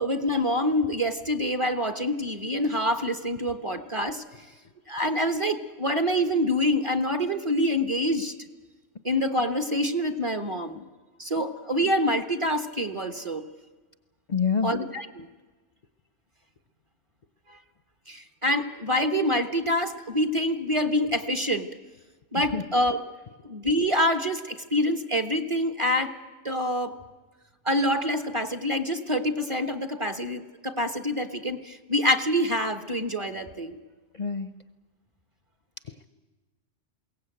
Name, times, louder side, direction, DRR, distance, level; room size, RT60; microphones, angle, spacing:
voice 1, 0.0-4.5 4.9-8.3 9.0-10.8 11.2-13.4 14.6-15.3 17.5-17.6 18.1-21.7 22.3-23.0 23.4-26.1 26.4-27.0 27.6-33.8, equal, 25° right, 7 dB, 1.2 m, -26 dB
voice 2, 14.3-14.7 22.3-22.6 34.1-34.5, left 6 dB, 40° left, 10 dB, 0.8 m, -26 dB
22.0 x 17.5 x 9.0 m, 1.3 s
omnidirectional pair, 1.3 m